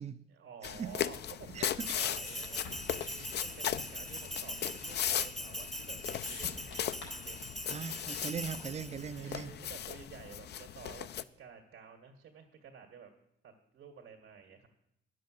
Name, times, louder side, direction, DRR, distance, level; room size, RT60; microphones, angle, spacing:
voice 1, 0.3-2.6 2.9-6.7 7.0-7.4 8.8-13.1 13.4-14.7, right 6 dB, 80° right, 1.9 m, -52 dB
sound 1, 0.6-11.2, left 10 dB, 60° left, 0.5 m, -38 dB
voice 2, 1.5-2.0 7.7-9.5, right 7 dB, 35° right, 0.5 m, -40 dB
Bell, 1.8-9.2, equal, ahead, 0.8 m, -42 dB
sound 2, 2.2-8.9, left 3 dB, 90° left, 4.4 m, -51 dB
10.5 x 7.5 x 7.7 m
cardioid pair, 90°, 20 cm